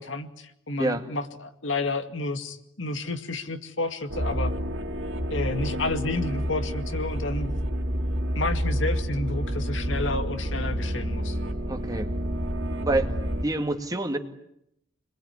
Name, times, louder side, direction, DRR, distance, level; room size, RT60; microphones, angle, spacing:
voice 1, 0.0-4.5 5.3-7.5 8.3-11.4, left 2 dB, 90° left, 7 dB, 2.3 m, -30 dB
sound 1, 4.1-13.4, equal, 85° right, 3.1 m, -29 dB
voice 2, 11.7-12.1 12.8-13.1 13.4-14.2, right 2 dB, 20° right, 5 dB, 2.3 m, -27 dB
27.5 x 21.5 x 9.8 m, 0.79 s
head